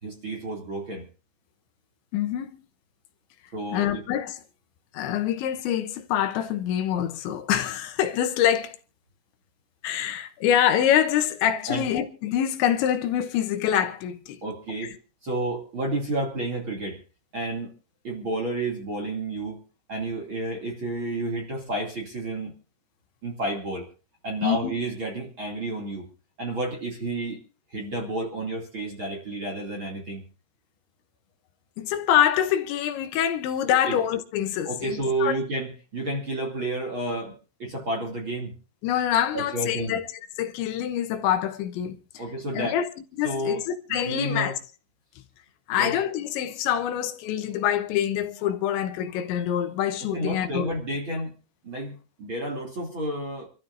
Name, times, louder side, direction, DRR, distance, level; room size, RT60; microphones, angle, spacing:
voice 1, 0.0-1.1 3.5-3.9 11.7-11.8 14.4-15.0 15.2-17.0 17.3-17.7 18.0-19.6 19.9-22.5 23.2-23.9 24.2-26.1 26.4-27.4 27.7-30.2 33.7-34.0 34.6-38.5 39.3-40.0 42.2-42.8 43.2-43.6 43.9-44.6 45.7-46.0 50.1-51.3 51.6-53.5, right 2 dB, 35° right, 2.5 m, -30 dB
voice 2, 2.1-2.5 3.7-4.4 4.9-8.8 9.8-14.4 14.8-14.9 24.4-24.7 31.8-35.4 38.8-40.1 40.4-42.2 42.5-42.9 43.2-43.6 43.9-44.6 45.7-50.7, left 10 dB, 75° left, 3.1 m, -25 dB
27.5 x 13.5 x 2.6 m
omnidirectional pair, 5.4 m